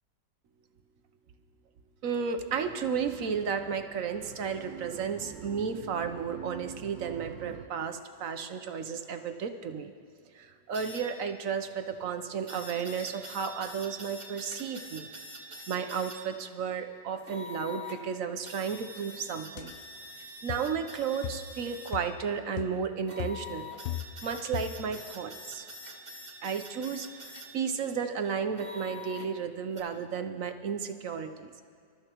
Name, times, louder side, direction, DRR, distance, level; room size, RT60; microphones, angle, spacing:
voice 1, 2.0-9.9 10.3-15.1 15.7-19.7 20.4-23.7 24.2-25.7 26.4-31.5, right 6 dB, 60° right, 7 dB, 1.0 m, -33 dB
sound 1, 2.5-7.7, right 8 dB, 75° right, 1.4 m, -45 dB
sound 2, 10.7-11.0 12.5-16.2 17.3-18.0 18.4-21.9 23.1-27.5 28.6-29.3 29.8-29.9, left 2 dB, 25° right, 1.8 m, -44 dB
sound 3, 19.6-19.7 20.5-20.8 21.2-21.6 21.9-22.3 22.6-22.9 23.2-24.3 24.5-24.9, left 12 dB, 75° left, 1.2 m, -38 dB
27.0 x 13.5 x 3.0 m, 2.3 s
omnidirectional pair, 2.0 m